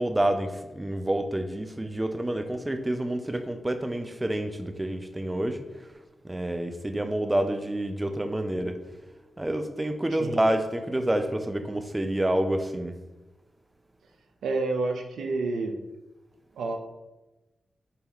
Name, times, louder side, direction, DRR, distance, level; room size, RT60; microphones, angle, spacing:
voice 1, 0.0-5.6 6.2-8.8 9.4-12.9, right 1 dB, 20° right, 7 dB, 0.5 m, -28 dB
voice 2, 14.4-15.7 16.5-16.8, right 3 dB, 85° right, 3 dB, 0.4 m, -29 dB
4.1 x 2.7 x 3.9 m, 1.1 s
supercardioid pair, 40°, 0 cm